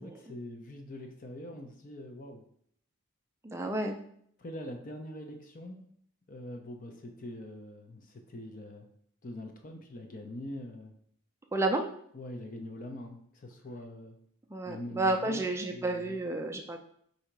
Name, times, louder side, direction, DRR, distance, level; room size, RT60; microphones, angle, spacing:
voice 1, 0.0-2.4 4.4-5.8 6.3-8.9 9.2-10.9 12.1-14.2 14.6-16.2, left 1 dB, 40° left, 4 dB, 0.5 m, -43 dB
voice 2, 3.4-4.0 11.5-11.8 14.5-16.8, right 2 dB, 10° right, 3 dB, 0.4 m, -31 dB
3.8 x 2.7 x 4.5 m, 0.66 s
head